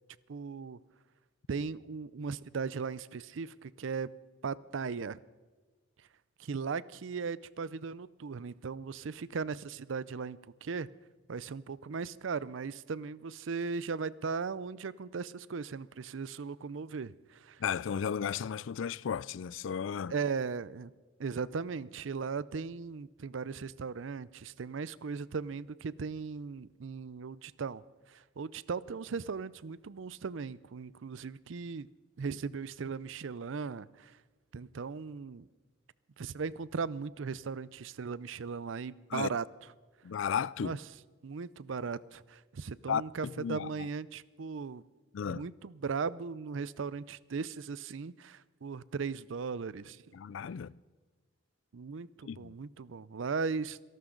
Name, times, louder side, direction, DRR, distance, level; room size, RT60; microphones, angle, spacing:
voice 1, 0.3-0.8 1.5-4.1 4.4-5.2 6.4-10.9 11.3-17.6 20.1-20.9 21.2-27.8 28.1-31.9 32.2-34.2 34.5-35.5 36.2-39.4 40.6-40.8 41.2-44.8 45.2-50.0 51.7-53.8, right 5 dB, 80° right, 0.5 m, -37 dB
voice 2, 17.6-20.1 39.1-39.3 40.0-40.8 42.9-43.7 45.1-45.5 50.1-50.8 52.2-52.5, left 7 dB, 75° left, 0.4 m, -34 dB
27.0 x 12.0 x 3.9 m
head